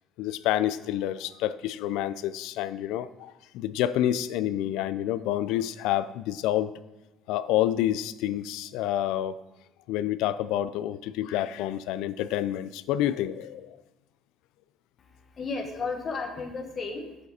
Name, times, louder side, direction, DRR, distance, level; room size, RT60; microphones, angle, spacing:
voice 1, 0.2-6.7 7.3-9.4 9.9-13.8, left 12 dB, 85° left, 0.3 m, -28 dB
voice 2, 15.0-17.3, left 4 dB, 25° left, 1.0 m, -34 dB
7.3 x 6.6 x 4.1 m
cardioid pair, 175°, 0 cm